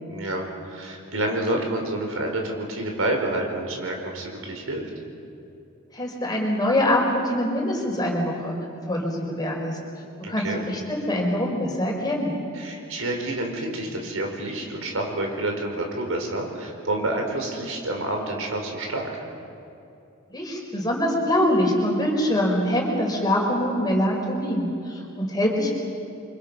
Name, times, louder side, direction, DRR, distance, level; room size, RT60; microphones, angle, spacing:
voice 1, 0.1-4.8 10.2-10.6 12.5-19.1, right 1 dB, 85° right, 2 dB, 4.7 m, -28 dB
voice 2, 5.9-8.5 8.9-9.8 10.3-12.4 20.3-25.7, left 1 dB, 20° left, 0 dB, 4.5 m, -24 dB
29.5 x 24.5 x 6.2 m, 2.7 s
head